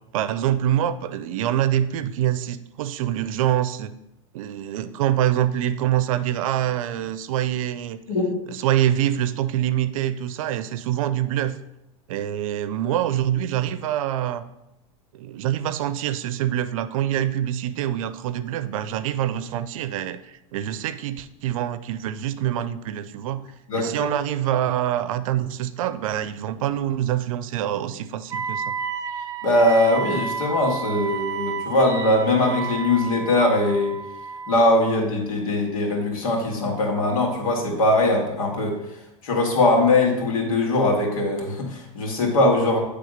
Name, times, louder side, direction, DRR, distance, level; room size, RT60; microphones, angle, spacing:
voice 1, 0.1-3.9 4.3-8.0 8.5-11.6 12.1-14.4 15.1-23.5 23.7-28.7, right 11 dB, 75° right, 14 dB, 0.6 m, -25 dB
voice 2, 23.7-24.1 29.4-34.0 34.5-38.8 39.2-42.8, left 2 dB, 90° left, 1 dB, 2.0 m, -21 dB
Wind instrument woodwind instrument, 28.3-34.7, right 6 dB, 20° right, 0.6 m, -31 dB
9.1 x 3.5 x 5.1 m, 0.89 s
supercardioid pair, 120°, 18 cm